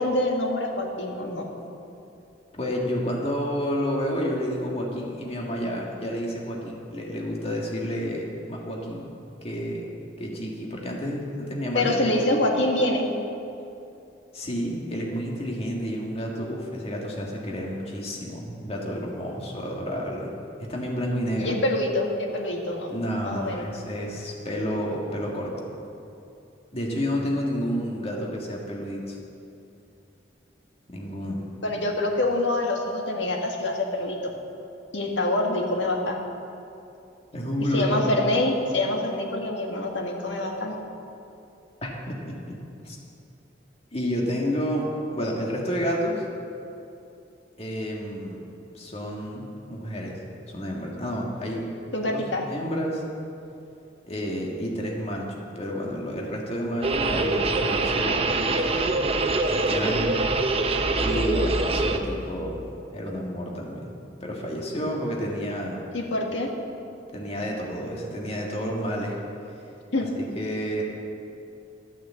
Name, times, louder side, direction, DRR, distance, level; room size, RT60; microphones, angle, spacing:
voice 1, 0.0-1.5 11.7-13.1 21.4-22.9 23.2-23.7 31.6-34.3 34.9-36.2 37.7-40.8 51.9-52.4 65.9-66.5 69.9-70.1, left 1 dB, 85° left, 1 dB, 1.8 m, -25 dB
voice 2, 2.5-9.1 9.4-9.9 10.2-12.4 14.3-20.3 20.6-21.5 22.9-25.7 26.7-29.2 30.9-31.4 37.3-38.1 41.8-43.0 43.9-46.3 47.6-48.4 48.7-50.2 50.5-51.6 52.0-52.2 52.5-53.0 54.0-58.9 59.5-60.2 60.9-62.7 62.9-63.9 64.2-65.8 67.1-69.2 70.2-70.8, equal, 35° left, -2 dB, 1.8 m, -30 dB
sound 1, 56.8-62.0, right 2 dB, 30° right, 0.7 m, -24 dB
12.0 x 9.3 x 7.5 m, 2.7 s
head